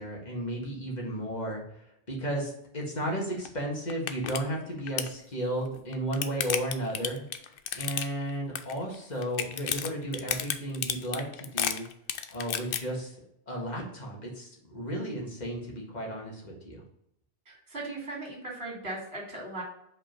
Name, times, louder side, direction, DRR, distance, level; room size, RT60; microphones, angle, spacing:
voice 1, 0.0-1.6 2.1-11.9 12.3-13.2 13.5-16.8, right 1 dB, 40° left, -2 dB, 1.8 m, -34 dB
sound 1, 3.5-3.6 3.9-4.4 4.7-5.1 5.8-8.3 8.6-9.0 9.2-12.8, left 8 dB, 65° left, 0.7 m, -31 dB
voice 2, 17.5-19.6, right 2 dB, 70° right, -1 dB, 2.4 m, -38 dB
5.2 x 4.2 x 5.1 m, 0.76 s
omnidirectional pair, 1.1 m